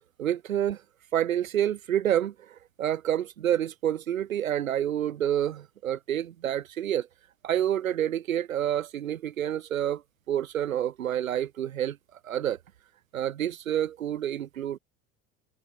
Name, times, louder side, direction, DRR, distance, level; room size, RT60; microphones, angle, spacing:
voice 1, 0.2-0.8 1.1-2.3 2.8-7.1 7.4-10.0 10.3-12.0 12.3-12.6 13.1-14.8, right 10 dB, 85° right, 0.7 m, -28 dB
figure-of-eight pair, 65°, 40 cm